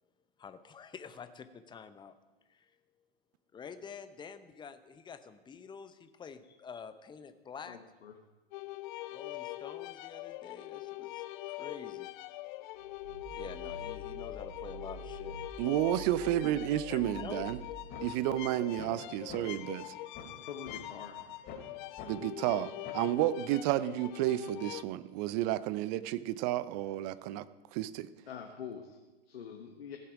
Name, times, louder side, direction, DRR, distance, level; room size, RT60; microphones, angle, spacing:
voice 1, 0.4-2.1 2.5-2.8 3.5-7.8 9.1-12.1 13.3-15.4 16.9-17.7, left 6 dB, 15° left, 11 dB, 0.7 m, -47 dB
voice 2, 7.7-8.1 20.4-21.2 28.3-29.0 29.3-30.0, left 7 dB, 80° left, 3 dB, 1.2 m, -45 dB
sound 1, 8.5-24.8, left 17 dB, 50° left, 0.5 m, -43 dB
sound 2, 12.8-18.2, right 1 dB, 85° right, 1.8 m, -48 dB
voice 3, 15.6-17.6 18.0-20.0 22.1-27.5 27.7-28.1, right 14 dB, 45° right, 16 dB, 0.6 m, -31 dB
sound 3, 17.9-18.0 18.4-18.5 18.8-19.0 19.3-19.4 19.8-19.9 20.2-20.4 20.7-20.8 21.2-21.6 22.0-22.1 22.5-22.6 22.8-23.1, left 6 dB, 30° left, 3.0 m, -46 dB
16.0 x 7.2 x 4.9 m, 1.2 s
hypercardioid pair, 100°, 30 cm